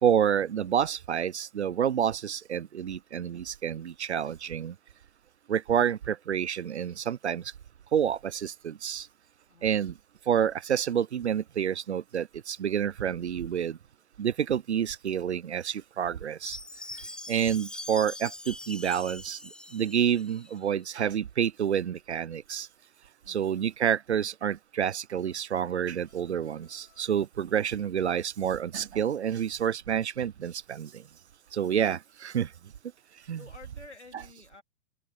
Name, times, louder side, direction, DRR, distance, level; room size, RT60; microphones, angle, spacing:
voice 1, 0.0-4.7 5.5-7.4 7.9-9.1 9.6-9.9 10.3-13.8 14.2-16.6 17.3-19.4 19.7-22.7 23.3-31.0 31.5-32.5 33.3-33.4, right 8 dB, 75° right, 0.7 m, -28 dB
Chime, 16.5-20.6, left 1 dB, ahead, 1.2 m, -42 dB
sound 1, 25.2-27.3, left 21 dB, 35° left, 6.5 m, -66 dB
voice 2, 33.4-34.6, left 3 dB, 80° left, 3.5 m, -51 dB
open air
figure-of-eight pair, 105°, 34 cm